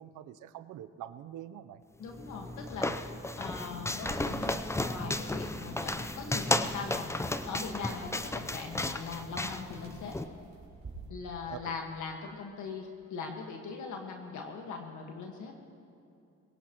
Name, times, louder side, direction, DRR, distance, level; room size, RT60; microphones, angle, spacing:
voice 1, 0.0-1.8 11.5-11.8, right 11 dB, 80° right, 12 dB, 0.7 m, -45 dB
voice 2, 2.0-10.2 11.1-15.5, left 5 dB, 75° left, 2 dB, 1.6 m, -40 dB
sound 1, 2.1-10.2, left 2 dB, 10° left, 0.6 m, -34 dB
sound 2, 4.1-11.1, right 3 dB, 35° right, 4.4 m, -51 dB
21.5 x 18.0 x 3.0 m, 2.6 s
cardioid pair, 90°, 30 cm